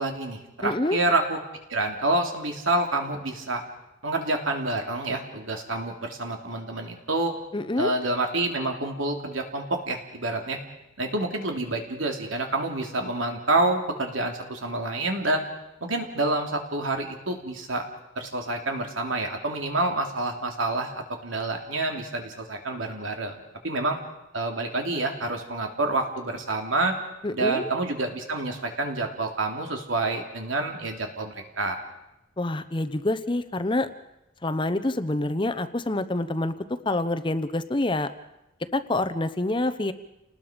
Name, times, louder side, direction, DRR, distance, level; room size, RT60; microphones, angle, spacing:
voice 1, 0.0-1.4 1.7-3.6 4.0-7.3 7.8-10.6 11.0-15.4 15.8-17.8 18.1-23.4 23.6-24.0 24.3-27.0 27.3-31.8, right 2 dB, 85° right, 3 dB, 3.1 m, -28 dB
voice 2, 0.6-1.0 7.5-7.9 27.2-27.7 32.4-33.9 34.4-36.5 36.8-38.1 38.7-39.9, left 2 dB, 25° left, 11 dB, 0.8 m, -26 dB
29.5 x 19.5 x 5.2 m, 0.92 s
head